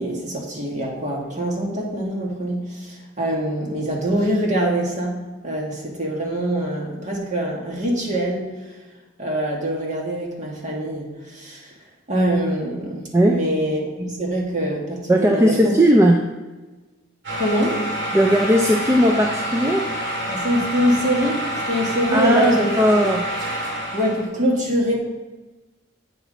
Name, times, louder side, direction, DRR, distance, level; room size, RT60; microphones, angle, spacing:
voice 1, 0.0-8.5 9.2-11.7 12.1-15.6 17.4-17.8 20.3-23.1 23.9-24.9, equal, 35° right, -2 dB, 1.8 m, -24 dB
voice 2, 15.1-16.3 18.1-19.9 22.1-23.3, equal, 15° right, 2 dB, 0.4 m, -17 dB
sound 1, 17.2-24.3, right 1 dB, 60° right, 2.3 m, -27 dB
8.4 x 5.6 x 4.0 m, 1.2 s
head